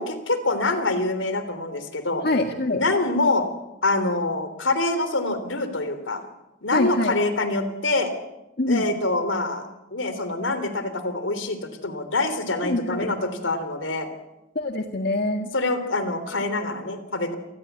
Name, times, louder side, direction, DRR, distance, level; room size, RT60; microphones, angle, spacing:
voice 1, 0.0-2.2 2.7-3.5 3.8-6.2 6.6-8.1 8.7-14.1 15.5-17.4, left 2 dB, 85° left, 10 dB, 3.4 m, -25 dB
voice 2, 2.2-2.8 6.7-7.1 8.6-8.9 12.6-13.1 14.5-15.5, left 2 dB, 55° left, 4 dB, 1.8 m, -24 dB
28.0 x 19.5 x 8.2 m, 1.0 s
head